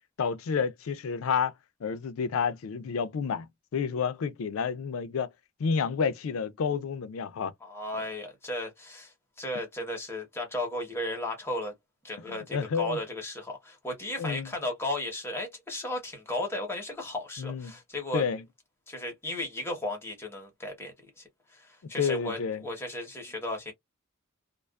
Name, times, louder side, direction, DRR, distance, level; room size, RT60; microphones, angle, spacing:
voice 1, 0.2-1.5 1.8-3.5 3.7-5.3 5.6-7.5 12.3-13.0 14.2-14.5 17.4-17.7 18.1-18.4 22.0-22.6, left 6 dB, 80° left, 0.4 m, -29 dB
voice 2, 7.6-11.7 12.0-18.2 18.9-21.2 21.5-23.7, left 1 dB, 10° left, 0.9 m, -35 dB
2.4 x 2.3 x 2.3 m
head